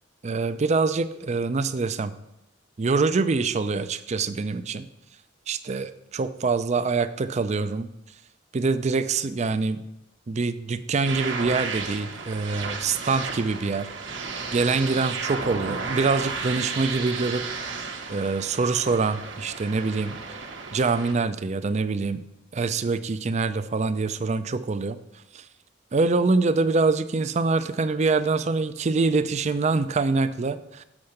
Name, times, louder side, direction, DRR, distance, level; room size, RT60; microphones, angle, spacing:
voice 1, 0.2-2.1 2.8-4.9 5.5-7.9 8.5-9.8 10.3-13.9 14.5-17.8 18.1-20.4 20.7-22.2 22.5-25.0 25.3-25.4 25.9-30.8, right 4 dB, 35° right, 13 dB, 0.4 m, -25 dB
sound 1, 11.0-21.1, right 4 dB, 75° right, 1.1 m, -33 dB
7.2 x 5.7 x 6.5 m, 0.88 s
head